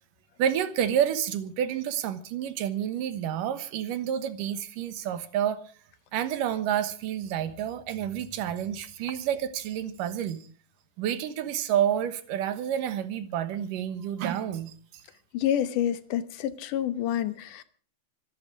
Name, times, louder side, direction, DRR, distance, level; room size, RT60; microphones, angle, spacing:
voice 1, 0.4-5.6 6.1-10.5 11.0-15.0, right 10 dB, 90° right, 2.9 m, -29 dB
voice 2, 15.3-17.6, left 10 dB, 80° left, 2.5 m, -28 dB
25.5 x 11.5 x 4.9 m
omnidirectional pair, 3.7 m